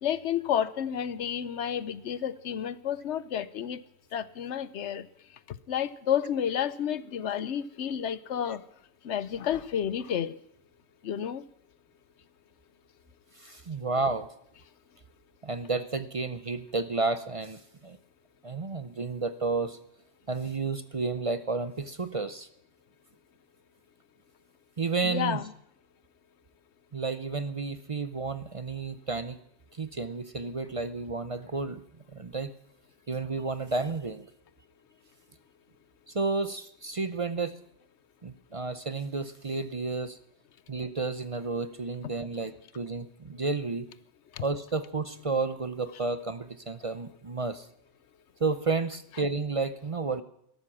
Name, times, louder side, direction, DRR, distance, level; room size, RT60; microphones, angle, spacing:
voice 1, 0.0-3.8 4.1-5.1 5.5-8.6 9.0-10.3 11.0-11.4 25.0-25.4 44.4-44.5, left 9 dB, 70° left, 1.0 m, -30 dB
voice 2, 13.4-14.3 15.4-18.0 18.4-19.8 20.3-22.5 24.8-25.4 26.9-29.4 29.7-31.8 32.1-32.5 33.1-34.3 36.1-37.6 38.2-40.2 40.7-43.9 44.4-47.7 48.4-50.2, right 3 dB, 35° right, 0.6 m, -31 dB
13.5 x 12.5 x 7.3 m
omnidirectional pair, 1.2 m